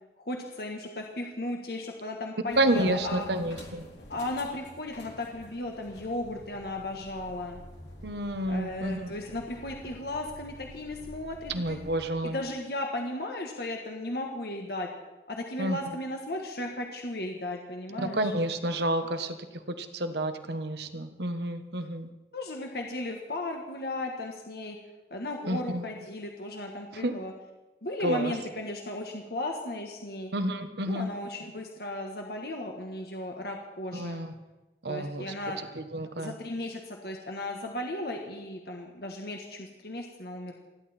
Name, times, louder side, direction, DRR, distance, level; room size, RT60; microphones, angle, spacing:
voice 1, 0.2-3.3 4.1-7.6 8.5-11.8 12.2-14.9 15.3-18.3 22.3-24.8 25.1-27.3 27.8-30.3 30.8-34.3 34.9-35.6 36.2-40.5, left 1 dB, 60° left, 2 dB, 1.6 m, -35 dB
sound 1, 2.5-12.1, equal, 85° left, 3.4 m, -49 dB
voice 2, 2.6-3.9 8.0-9.1 11.5-12.4 15.6-15.8 18.0-19.3 19.7-22.1 25.5-25.8 27.0-27.1 28.0-28.3 30.3-31.1 33.9-34.3 34.8-35.3 35.8-36.3, right 1 dB, 70° right, 8 dB, 1.4 m, -29 dB
29.5 x 11.0 x 4.4 m, 1.1 s
head